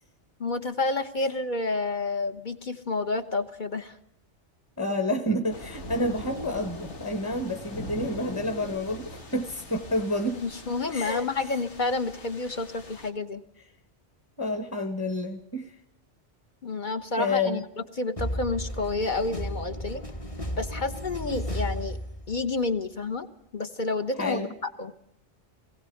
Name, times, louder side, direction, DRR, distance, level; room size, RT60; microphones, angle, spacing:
voice 1, 0.4-4.0 10.4-13.4 16.6-17.6 18.0-20.0 20.6-22.0 22.3-23.3 23.5-24.5 24.8-24.9, left 3 dB, 45° left, 7 dB, 1.1 m, -29 dB
voice 2, 4.8-10.4 10.9-11.2 14.4-15.8 17.2-17.6 24.2-24.5, left 1 dB, 15° left, 7 dB, 1.3 m, -29 dB
sound 1, 5.5-13.1, left 1 dB, 85° left, 2.2 m, -42 dB
sound 2, 18.2-22.6, equal, 30° left, 1.4 m, -34 dB
20.0 x 16.5 x 7.8 m, 0.78 s
omnidirectional pair, 1.2 m